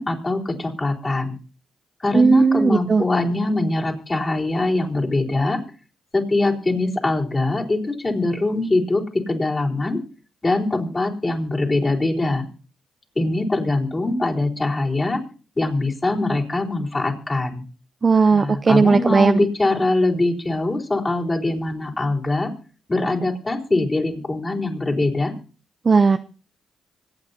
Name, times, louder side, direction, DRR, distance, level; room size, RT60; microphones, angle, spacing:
voice 1, 0.0-1.4 2.0-5.6 6.1-10.0 10.4-12.5 13.1-15.2 15.6-17.6 18.3-22.5 22.9-25.3, left 2 dB, 30° left, -2 dB, 4.4 m, -22 dB
voice 2, 2.1-3.0 18.0-19.4 25.8-26.2, right 4 dB, 45° right, 8 dB, 0.7 m, -16 dB
25.5 x 8.9 x 2.9 m, 0.37 s
supercardioid pair, 50°, 0 cm